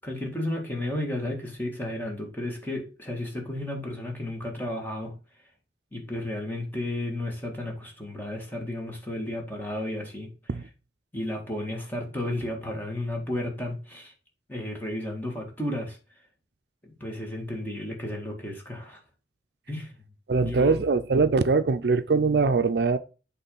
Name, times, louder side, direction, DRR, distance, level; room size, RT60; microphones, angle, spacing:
voice 1, 0.0-5.2 5.9-10.3 11.1-14.1 14.5-16.0 16.8-19.0 19.7-19.9 20.4-20.7, left 1 dB, 10° left, 1.9 m, -33 dB
voice 2, 20.3-23.0, right 4 dB, 70° right, 0.5 m, -22 dB
8.1 x 3.7 x 5.4 m
head